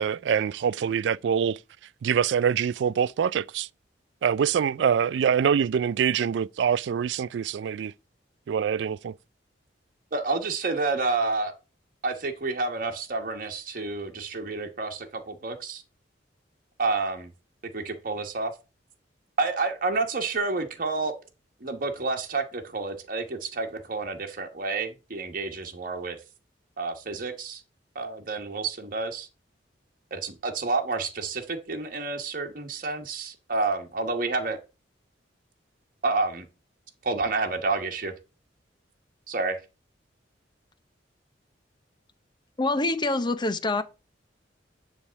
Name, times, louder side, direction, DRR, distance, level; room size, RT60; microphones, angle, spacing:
voice 1, 0.0-1.6 2.0-3.7 4.2-7.9 8.5-9.1, right 7 dB, 70° right, 0.3 m, -25 dB
voice 2, 10.1-11.5 12.0-15.8 16.8-17.3 17.7-18.5 19.4-21.1 21.6-26.2 26.8-27.6 27.9-29.3 30.1-34.6 36.0-36.5 37.0-38.1 39.3-39.6, right 3 dB, 50° right, 1.2 m, -29 dB
voice 3, 42.6-43.8, left 2 dB, 25° left, 0.7 m, -25 dB
9.8 x 3.5 x 6.2 m
head